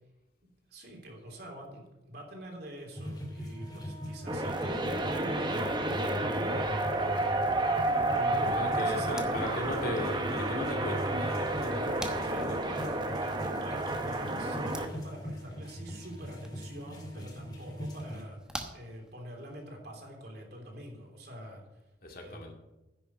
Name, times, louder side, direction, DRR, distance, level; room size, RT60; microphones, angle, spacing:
voice 1, 0.7-5.7 6.2-7.0 8.1-9.4 12.2-12.5 13.6-18.4 18.7-21.6 22.2-22.5, equal, 60° right, 0 dB, 3.3 m, -45 dB
sound 1, 2.9-18.2, equal, 25° left, 2.3 m, -41 dB
sound 2, 4.3-14.9, right 2 dB, 25° right, 1.1 m, -31 dB
voice 2, 8.3-12.8 22.0-22.5, left 1 dB, 55° left, 2 dB, 2.2 m, -37 dB
sound 3, 9.0-19.6, right 1 dB, 5° right, 1.1 m, -49 dB
10.5 x 6.6 x 8.6 m, 1.0 s
head